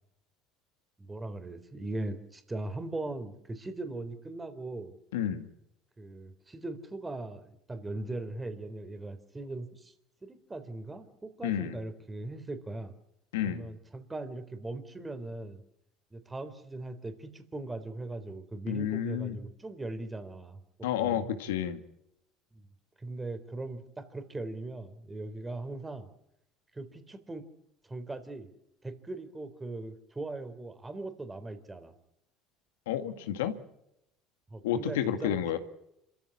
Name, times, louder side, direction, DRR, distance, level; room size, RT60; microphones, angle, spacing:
voice 1, 1.0-4.9 6.0-9.9 10.2-12.9 13.4-15.6 16.1-21.3 22.5-22.7 23.0-26.1 26.7-27.5 27.8-28.5 28.8-31.9 34.5-35.6, right 2 dB, 20° right, 10 dB, 3.7 m, -40 dB
voice 2, 5.1-5.5 11.4-11.8 13.3-13.7 18.7-19.4 20.8-21.8 32.9-33.5 34.6-35.6, left 10 dB, 85° left, 9 dB, 2.0 m, -30 dB
27.0 x 15.0 x 9.9 m, 0.81 s
hypercardioid pair, 75°, 0 cm